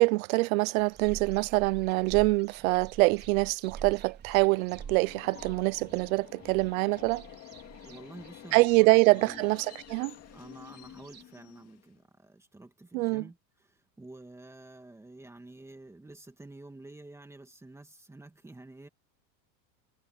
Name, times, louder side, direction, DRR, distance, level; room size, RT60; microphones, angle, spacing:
voice 1, 0.0-7.2 8.5-10.1 12.9-13.2, right 25 dB, 70° right, 0.6 m, -25 dB
sound 1, 0.8-11.2, right 7 dB, 25° right, 4.0 m, -47 dB
Subway metro underground, 4.3-12.0, left 12 dB, 35° left, 2.1 m, -50 dB
voice 2, 7.8-9.4 10.3-18.9, right 2 dB, 5° right, 2.4 m, -49 dB
supercardioid pair, 150°, 43 cm